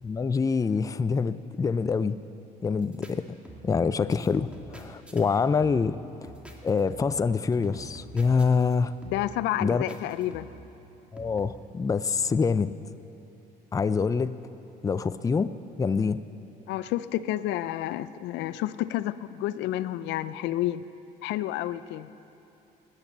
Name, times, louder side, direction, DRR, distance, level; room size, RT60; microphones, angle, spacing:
voice 1, 0.0-2.2 2.6-3.2 3.6-6.0 6.6-8.9 9.6-9.8 11.1-12.7 13.7-14.4 14.8-15.5 15.8-16.2, left 5 dB, 20° left, 14 dB, 0.4 m, -25 dB
sound 1, 2.8-3.1 3.4-3.8 4.1-5.2 5.6-6.0 6.2-7.3 7.5-8.7 9.0-9.4 9.9-10.7 11.2-11.4, right 1 dB, 5° right, 2.0 m, -46 dB
voice 2, 9.1-10.5 16.7-20.8 21.2-22.1, left 14 dB, 80° left, 15 dB, 0.5 m, -30 dB
17.0 x 9.8 x 7.4 m, 2.9 s
cardioid pair, 90°, 18 cm